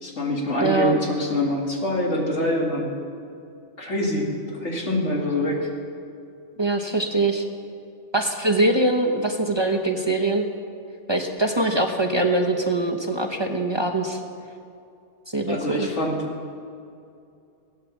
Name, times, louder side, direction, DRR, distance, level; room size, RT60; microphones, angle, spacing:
voice 1, 0.0-2.9 3.8-5.7 15.5-16.2, left 1 dB, 85° left, -1 dB, 2.7 m, -25 dB
voice 2, 0.6-1.0 6.6-7.4 8.1-10.4 11.1-14.2 15.3-15.9, right 2 dB, 25° right, 2 dB, 0.9 m, -23 dB
18.0 x 9.1 x 7.3 m, 2.5 s
omnidirectional pair, 1.2 m